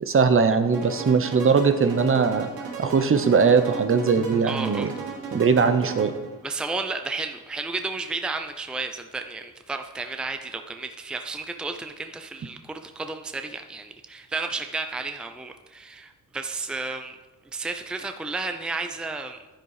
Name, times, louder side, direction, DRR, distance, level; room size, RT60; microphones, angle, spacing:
voice 1, 0.0-2.5 2.8-4.9 5.3-6.1, right 5 dB, 35° right, 10 dB, 0.9 m, -20 dB
sound 1, 0.7-6.4, right 4 dB, 80° right, 2.9 m, -35 dB
voice 2, 4.4-4.9 6.4-17.2 17.5-19.4, right 3 dB, ahead, 6 dB, 0.6 m, -32 dB
10.5 x 10.5 x 4.9 m, 1.2 s
cardioid pair, 115°, 36 cm